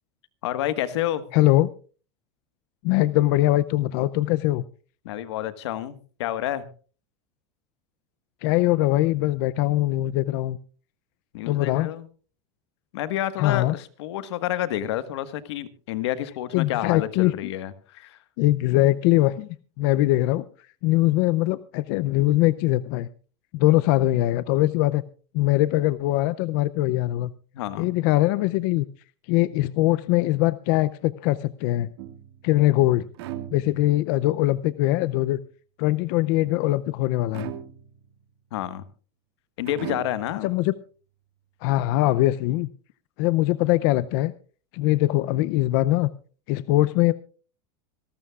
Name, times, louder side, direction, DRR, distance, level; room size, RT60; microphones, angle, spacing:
voice 1, 0.4-1.2 5.0-6.6 11.3-12.1 12.9-18.2 27.5-27.9 38.5-38.8 39.6-40.5, left 12 dB, 80° left, 13 dB, 1.5 m, -29 dB
voice 2, 1.3-1.7 2.8-4.7 8.4-10.6 11.5-11.9 13.4-13.8 16.5-17.5 18.4-19.5 19.8-20.5 20.8-23.1 23.5-25.0 25.3-27.3 27.8-28.9 29.3-31.9 32.4-33.1 33.5-35.4 35.8-37.5 40.4-40.7 41.6-42.7 43.2-44.3 44.7-46.1 46.5-47.1, left 16 dB, 50° left, 16 dB, 0.5 m, -22 dB
sound 1, 32.0-32.5 33.1-34.1 37.3-38.1 39.6-40.4, right 12 dB, 70° right, 1.8 m, -38 dB
26.0 x 12.5 x 2.4 m, 0.38 s
supercardioid pair, 165°, 14 cm